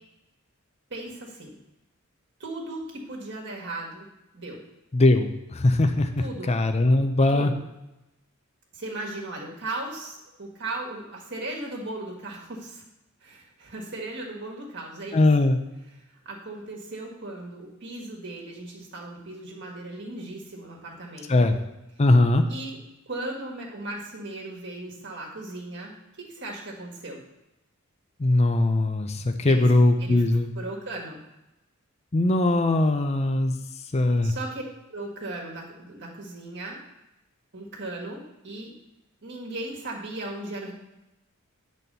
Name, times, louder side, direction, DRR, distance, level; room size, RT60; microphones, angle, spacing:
voice 1, 0.9-1.5 2.4-4.1 4.3-4.6 6.2-6.5 7.3-7.6 8.7-12.8 13.2-15.2 16.2-21.6 22.5-22.8 23.0-27.2 29.4-29.7 30.0-30.2 30.5-31.2 34.2-34.6 34.9-36.8 37.5-38.7 39.2-40.7, right 2 dB, 55° right, -2 dB, 1.6 m, -37 dB
voice 2, 4.9-7.5 15.1-15.6 21.3-21.5 22.0-22.4 28.2-30.5 32.1-33.6 33.9-34.3, left 2 dB, 30° left, 7 dB, 0.5 m, -20 dB
9.0 x 4.2 x 6.7 m, 0.93 s
head